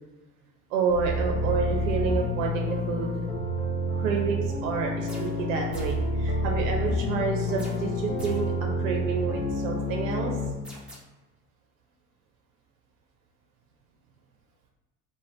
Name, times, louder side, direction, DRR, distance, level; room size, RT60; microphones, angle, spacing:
voice 1, 0.7-3.2 3.9-10.4, right 5 dB, 60° right, 1 dB, 0.5 m, -29 dB
sound 1, 0.9-10.5, left 1 dB, 65° left, 0.7 m, -29 dB
sound 2, 5.1-5.4 5.7-6.1 7.6-8.6 10.6-11.0, right 1 dB, ahead, 0.4 m, -47 dB
2.5 x 2.1 x 3.1 m, 1.1 s
figure-of-eight pair, 65°, 46 cm